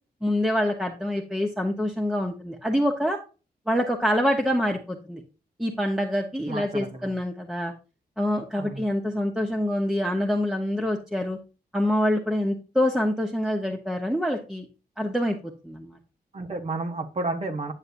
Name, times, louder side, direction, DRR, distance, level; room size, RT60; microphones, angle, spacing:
voice 1, 0.2-3.2 3.7-5.2 5.6-7.7 8.2-11.4 11.7-14.7 15.0-16.0, equal, 5° right, 1 dB, 1.1 m, -26 dB
voice 2, 6.5-7.2 8.6-8.8 16.3-17.7, right 2 dB, 40° right, 5 dB, 1.1 m, -31 dB
9.9 x 6.5 x 2.7 m, 0.32 s
wide cardioid pair, 105°, 17 cm